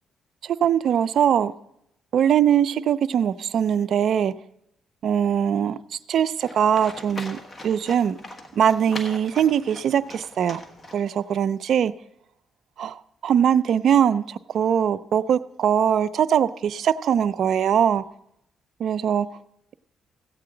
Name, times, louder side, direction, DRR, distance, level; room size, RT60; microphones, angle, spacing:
voice 1, 0.6-1.5 2.1-4.3 5.0-5.8 6.1-7.4 7.6-8.2 8.6-10.6 10.9-11.9 12.8-12.9 13.2-14.2 14.5-18.0 18.8-19.3, right 8 dB, 65° right, 16 dB, 0.3 m, -21 dB
Livestock farm animals working animals, 6.4-11.4, left 1 dB, 30° left, 1.3 m, -40 dB
15.0 x 8.6 x 3.8 m, 0.80 s
cardioid pair, 90°, 0 cm